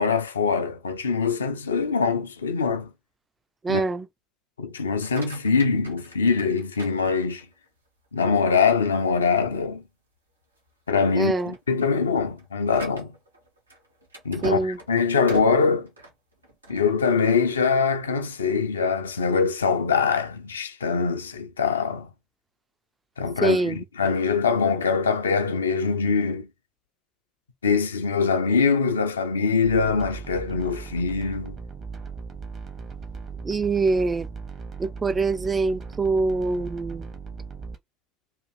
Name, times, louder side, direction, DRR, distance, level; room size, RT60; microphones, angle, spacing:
voice 1, 0.0-2.9 3.7-3.8 4.6-7.4 8.1-9.8 10.9-13.1 14.2-15.9 16.7-22.1 23.2-26.5 27.6-31.6, left 5 dB, 80° left, 0.4 m, -23 dB
voice 2, 3.6-4.1 11.1-11.6 14.4-14.8 23.4-23.8 33.4-34.3 34.8-37.1, right 3 dB, 25° right, 0.3 m, -24 dB
sound 1, 4.8-7.7 8.2-8.6 9.1-9.2 9.6-9.7 10.4-10.7 11.0-16.9, right 1 dB, 85° right, 0.6 m, -41 dB
sound 2, 29.6-37.8, right 5 dB, 45° right, 0.9 m, -38 dB
2.6 x 2.4 x 3.2 m
figure-of-eight pair, 55°, 0 cm